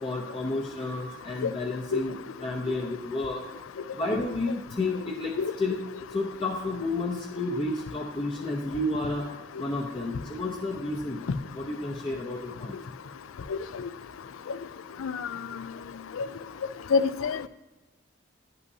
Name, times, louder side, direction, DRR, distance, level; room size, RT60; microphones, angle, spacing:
voice 1, 0.0-3.4 3.9-5.8 6.1-9.3 9.6-11.2 11.5-12.8, left 2 dB, 25° left, -1 dB, 0.6 m, -31 dB
voice 2, 16.9-17.5, left 5 dB, 90° left, 14 dB, 0.4 m, -25 dB
10.5 x 5.5 x 2.7 m, 1.1 s
head